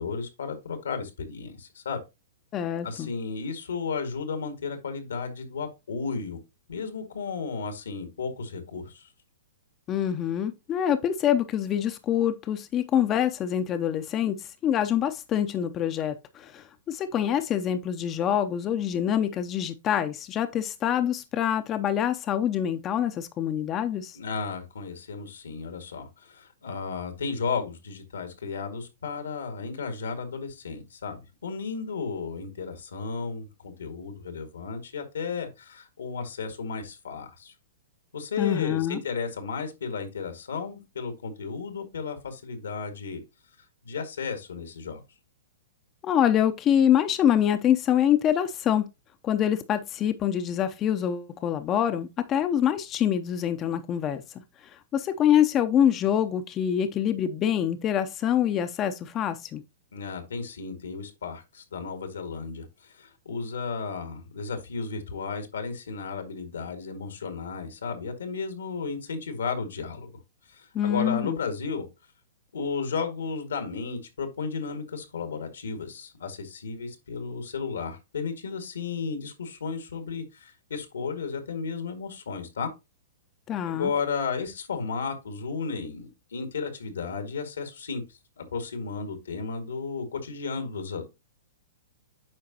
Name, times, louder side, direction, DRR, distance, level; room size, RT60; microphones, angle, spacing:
voice 1, 0.0-2.0 2.8-6.4 6.7-9.1 24.1-37.5 38.1-43.2 43.8-45.0 59.9-70.1 70.5-71.9 72.5-82.7 83.7-88.0 88.4-91.1, left 5 dB, 90° left, 2.0 m, -34 dB
voice 2, 2.5-3.1 9.9-24.2 38.4-39.0 46.0-48.9 49.2-54.2 54.9-59.6 70.7-71.4 83.5-83.9, left 10 dB, 30° left, 0.6 m, -25 dB
8.7 x 5.0 x 2.8 m
hypercardioid pair, 130°, 0 cm